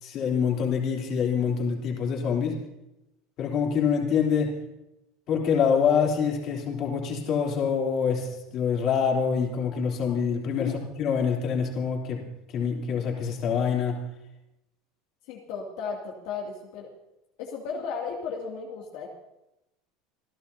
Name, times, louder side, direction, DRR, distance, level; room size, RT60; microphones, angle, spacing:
voice 1, 0.0-2.6 3.4-4.5 5.3-10.7 11.0-12.2 12.5-14.0, left 6 dB, 35° left, -1 dB, 3.3 m, -25 dB
voice 2, 15.3-16.9 17.4-19.1, left 5 dB, 60° left, -2 dB, 2.4 m, -34 dB
27.5 x 15.0 x 2.8 m, 0.90 s
cardioid pair, 175°, 0 cm